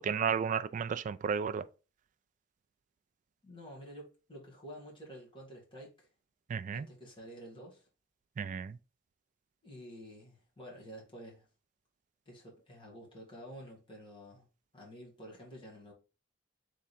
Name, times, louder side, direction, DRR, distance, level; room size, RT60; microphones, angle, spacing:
voice 1, 0.0-1.6 6.5-6.9 8.4-8.8, right 6 dB, 40° right, 0.3 m, -33 dB
voice 2, 3.4-6.1 6.7-7.9 9.6-11.5 12.2-14.4 14.7-15.9, equal, 25° left, 1.8 m, -50 dB
3.7 x 3.3 x 4.2 m
head